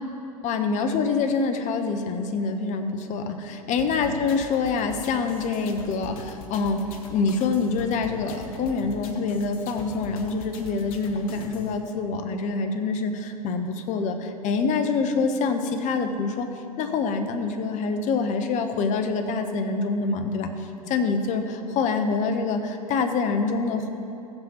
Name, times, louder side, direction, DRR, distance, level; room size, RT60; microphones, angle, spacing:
voice 1, 0.4-6.8 7.1-16.5 16.8-23.9, left 4 dB, 40° left, 6 dB, 0.9 m, -26 dB
sound 1, 3.8-11.8, left 3 dB, 65° left, 1.1 m, -41 dB
15.5 x 7.6 x 3.0 m, 2.7 s
hypercardioid pair, 95°, 20 cm